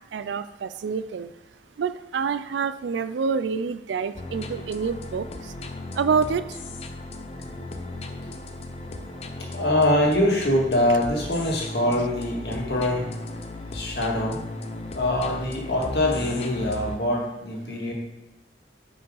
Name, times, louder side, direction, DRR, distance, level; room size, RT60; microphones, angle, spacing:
voice 1, 0.1-1.3 1.8-5.5 5.9-6.6, right 5 dB, 85° right, 13 dB, 0.4 m, -27 dB
sound 1, 4.1-17.0, left 2 dB, 35° left, 0.6 m, -36 dB
voice 2, 9.5-13.1 13.7-14.4 14.9-17.9, left 1 dB, 65° left, -1 dB, 1.9 m, -24 dB
10.0 x 5.1 x 3.9 m, 0.94 s
head